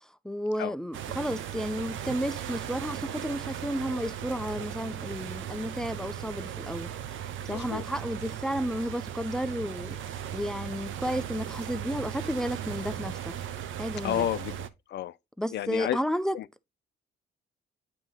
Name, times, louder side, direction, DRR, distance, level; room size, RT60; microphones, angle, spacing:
voice 1, 0.2-6.9 7.5-10.0 10.3-13.2 13.8-14.3 15.4-16.4, equal, 5° left, 0.5 m, -32 dB
sound 1, 0.9-14.7, right 10 dB, 75° right, 0.7 m, -37 dB
voice 2, 7.5-7.8 14.0-15.1 15.5-16.0 16.3-16.4, left 12 dB, 60° left, 0.5 m, -31 dB
8.8 x 3.0 x 3.8 m
cardioid pair, 90°, 20 cm